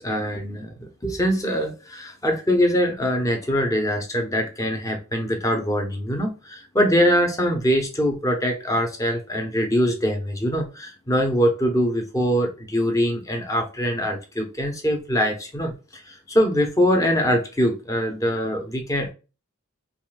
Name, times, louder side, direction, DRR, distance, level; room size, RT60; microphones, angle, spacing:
voice 1, 0.0-15.7 16.1-19.1, equal, 15° left, 3 dB, 0.9 m, -23 dB
5.3 x 2.5 x 2.3 m, 0.31 s
head